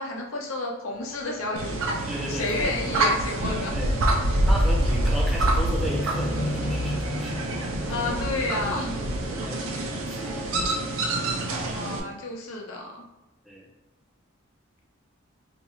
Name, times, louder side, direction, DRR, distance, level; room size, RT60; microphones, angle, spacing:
voice 1, 0.0-1.8 2.3-4.3 7.9-9.2 11.7-13.0, left 2 dB, 85° left, 0 dB, 0.7 m, -31 dB
sound 1, 0.9-10.4 11.2-11.3, left 1 dB, 50° left, 0.5 m, -36 dB
sound 2, 1.6-12.0, right 1 dB, 90° right, 0.5 m, -26 dB
voice 2, 2.1-3.1 3.7-4.0 4.4-8.1 8.6-8.7 9.0-11.2 13.4-13.7, equal, ahead, -4 dB, 0.6 m, -36 dB
2.6 x 2.4 x 4.1 m, 0.95 s
head